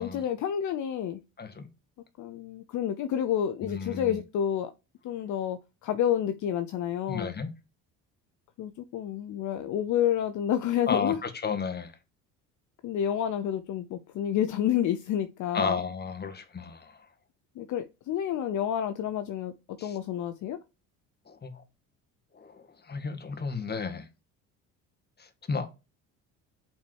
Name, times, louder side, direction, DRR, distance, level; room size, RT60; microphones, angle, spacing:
voice 1, 0.0-1.2 2.2-4.7 5.0-7.3 8.6-11.2 12.8-15.8 17.6-19.5 19.8-20.6, left 10 dB, 55° left, 0.7 m, -29 dB
voice 2, 3.6-4.2 7.1-7.5 10.9-11.9 15.5-16.9 19.8-20.0 21.3-21.5 22.4-24.0 25.5-25.7, left 5 dB, 30° left, 1.6 m, -32 dB
5.6 x 4.6 x 4.6 m
supercardioid pair, 75°, 35 cm